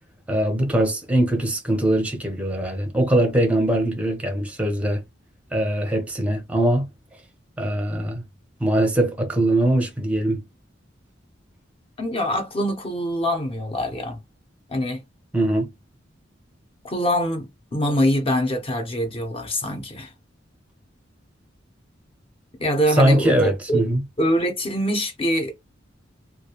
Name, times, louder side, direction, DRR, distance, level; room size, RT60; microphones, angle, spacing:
voice 1, 0.3-5.0 5.5-6.9 7.6-8.2 8.6-10.4 15.3-15.7 23.0-24.0, right 1 dB, 5° right, 0.6 m, -21 dB
voice 2, 12.0-14.2 14.7-15.0 16.8-20.1 22.6-23.8 24.2-25.6, equal, 30° left, 0.7 m, -24 dB
2.3 x 2.1 x 2.9 m
head